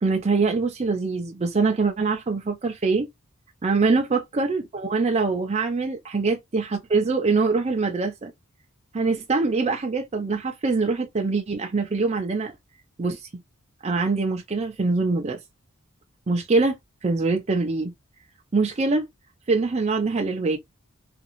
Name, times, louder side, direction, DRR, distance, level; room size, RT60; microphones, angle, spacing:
voice 1, 0.0-3.1 3.6-8.3 8.9-12.5 13.0-13.4 13.8-15.4 16.3-16.8 17.0-17.9 18.5-19.1 19.5-20.6, right 3 dB, 30° right, 0.4 m, -24 dB
2.8 x 2.6 x 2.8 m
head